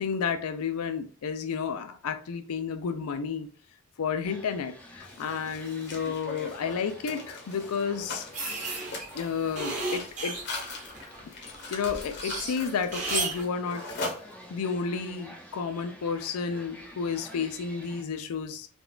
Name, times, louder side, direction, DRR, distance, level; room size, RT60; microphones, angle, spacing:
voice 1, 0.0-3.5 4.0-8.3 9.1-10.4 11.7-13.8 14.5-18.7, left 6 dB, 85° left, 8 dB, 0.4 m, -31 dB
sound 1, 4.2-18.0, equal, 5° left, 0.4 m, -50 dB
Mechanisms, 5.0-14.8, left 2 dB, 50° left, 0.8 m, -41 dB
sound 2, 8.3-11.2 11.6-13.4, right 3 dB, 35° right, 0.9 m, -34 dB
3.7 x 2.4 x 2.3 m, 0.41 s
head